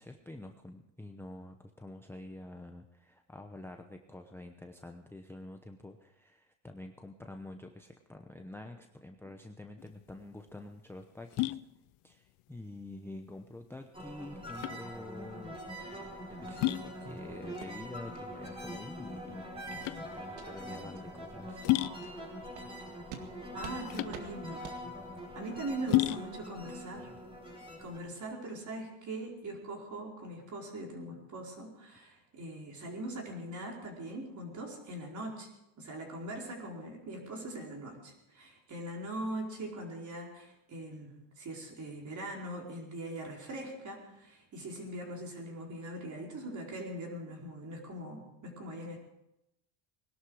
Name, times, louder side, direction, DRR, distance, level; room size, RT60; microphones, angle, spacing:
voice 1, 0.0-11.6 12.0-15.6 15.9-19.4 19.7-21.6, left 2 dB, 5° left, 4 dB, 0.8 m, -47 dB
sound 1, 9.8-28.3, left 19 dB, 75° left, 0.7 m, -36 dB
sound 2, 13.9-28.0, equal, 10° right, 5.0 m, -44 dB
sound 3, 16.5-16.6 17.0-17.2 17.6-17.7 18.1-18.2 18.7-18.8 19.2-19.4 19.8-20.0 20.3-20.5 20.9-21.0 21.5-21.6 22.0-22.1 22.5-22.7 23.1-23.3 23.6-23.8 24.1-24.3 24.6-24.8, right 8 dB, 80° right, 2.2 m, -48 dB
voice 2, 23.5-24.7 25.3-27.1 27.8-35.5 35.8-49.0, right 1 dB, 35° right, 0 dB, 4.7 m, -41 dB
20.5 x 12.0 x 4.9 m, 0.86 s
cardioid pair, 125°, 47 cm